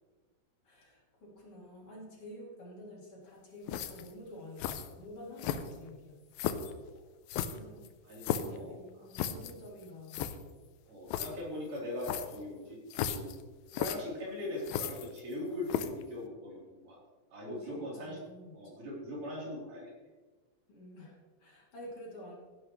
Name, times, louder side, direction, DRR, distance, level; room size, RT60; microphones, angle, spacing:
voice 1, 0.6-6.2 7.5-7.9 8.4-10.4 17.5-18.7 20.7-22.4, equal, 40° left, -4 dB, 3.6 m, -49 dB
sound 1, 3.7-4.1 4.6-4.9 5.4-5.9 6.4-6.7 7.3-8.6 9.1-9.5 9.8-9.9 10.1-10.4 11.1-11.3 12.0-12.4 12.9-13.4 13.7-14.0 14.6-15.3 15.7-16.0, left 10 dB, 85° left, 2.5 m, -35 dB
voice 2, 8.0-8.8 10.9-12.8 13.0-13.3 13.7-17.0 17.3-18.2 18.5-19.9, left 1 dB, 65° right, -5 dB, 5.3 m, -40 dB
15.5 x 11.0 x 3.2 m, 1.3 s
omnidirectional pair, 4.0 m